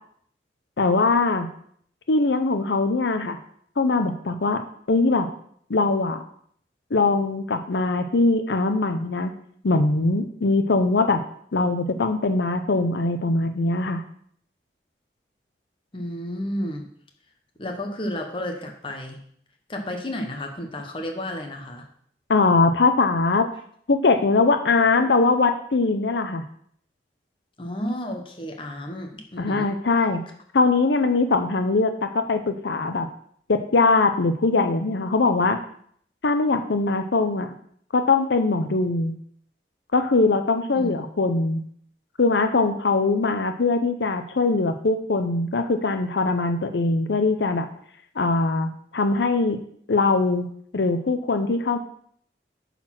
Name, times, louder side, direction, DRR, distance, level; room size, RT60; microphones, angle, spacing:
voice 1, 0.8-1.5 2.1-3.4 3.8-4.6 4.9-5.3 5.7-6.2 6.9-9.3 9.6-11.2 11.5-14.0 22.3-23.5 23.9-26.4 29.4-30.2 30.5-33.1 33.5-35.6 36.2-37.5 37.9-39.2 39.9-41.6 42.2-47.7 48.2-49.6 49.9-50.5 50.7-51.8, left 3 dB, 85° left, 8 dB, 0.7 m, -21 dB
voice 2, 15.9-16.9 17.6-19.2 19.7-21.9 27.6-29.7 40.7-40.9, left 1 dB, 30° left, 3 dB, 1.1 m, -32 dB
8.8 x 4.1 x 5.9 m, 0.62 s
head